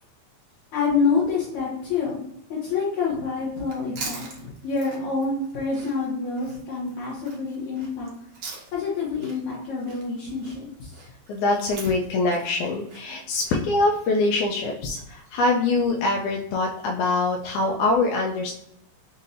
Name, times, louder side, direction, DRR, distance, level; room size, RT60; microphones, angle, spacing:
voice 1, 0.7-2.2 2.5-8.1 8.7-11.0, left 4 dB, 75° left, -8 dB, 2.4 m, -27 dB
Chewing mastication, 3.6-8.9 9.2-13.6, right 4 dB, 90° right, 0.9 m, -42 dB
voice 2, 11.3-18.5, left 3 dB, 90° left, -1 dB, 2.0 m, -24 dB
5.6 x 2.6 x 2.6 m, 0.74 s
omnidirectional pair, 3.4 m